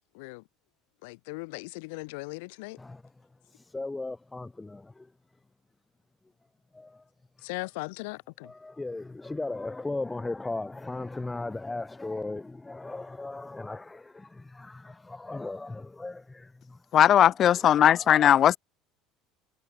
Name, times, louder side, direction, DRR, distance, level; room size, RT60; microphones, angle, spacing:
voice 1, 1.0-2.8 7.4-8.5, left 28 dB, 60° left, 4.7 m, -38 dB
voice 2, 3.5-5.1 6.7-7.0 7.4-7.5 8.4-16.8 17.4-18.5, left 2 dB, 10° left, 3.2 m, -37 dB
voice 3, 16.9-18.6, left 10 dB, 40° left, 0.5 m, -19 dB
figure-of-eight pair, 65°, 0 cm